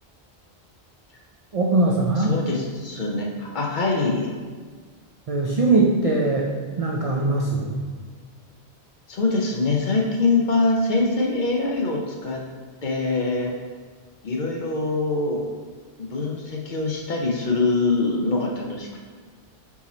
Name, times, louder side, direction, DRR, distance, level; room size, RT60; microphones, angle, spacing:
voice 1, 1.5-2.3 5.3-7.8, right 2 dB, 55° right, -2 dB, 0.4 m, -21 dB
voice 2, 2.2-4.3 9.1-12.4 12.8-13.5 14.2-15.4 16.0-19.0, left 3 dB, 55° left, 0 dB, 0.7 m, -24 dB
4.6 x 2.8 x 4.1 m, 1.5 s
omnidirectional pair, 1.1 m